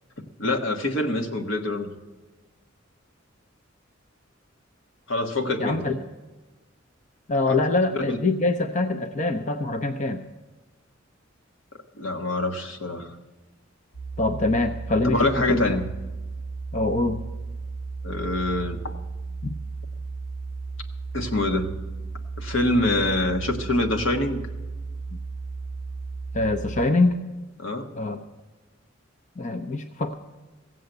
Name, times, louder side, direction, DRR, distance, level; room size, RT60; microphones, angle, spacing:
voice 1, 0.4-1.9 5.1-5.9 7.5-7.6 7.9-8.2 12.0-13.2 15.0-15.8 18.0-18.9 21.1-21.7 22.4-24.4 27.6-27.9, left 2 dB, 80° left, 5 dB, 1.4 m, -25 dB
voice 2, 5.6-6.0 7.3-10.2 14.2-15.2 15.5-15.6 16.7-17.2 19.4-19.5 26.3-27.2 28.0-28.2 29.4-30.1, left 2 dB, 40° left, 9 dB, 0.6 m, -24 dB
sound 1, 13.9-26.9, right 4 dB, 65° left, 0.9 m, -35 dB
16.0 x 7.6 x 7.9 m, 1.2 s
head